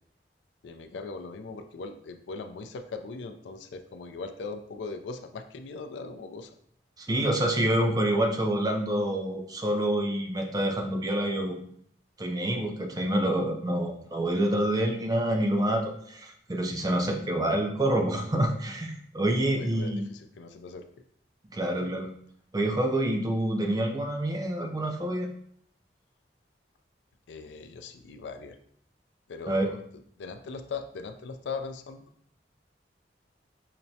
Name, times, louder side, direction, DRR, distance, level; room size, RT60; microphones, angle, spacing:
voice 1, 0.6-6.6 19.6-20.8 21.8-21.9 27.3-28.6 29.3-29.8 30.2-32.0, left 4 dB, 85° left, 7 dB, 0.4 m, -39 dB
voice 2, 7.0-11.6 12.2-20.1 21.5-22.1 22.5-25.3 29.5-29.7, right 1 dB, 20° right, 3 dB, 0.5 m, -27 dB
5.8 x 2.1 x 2.7 m, 0.65 s
head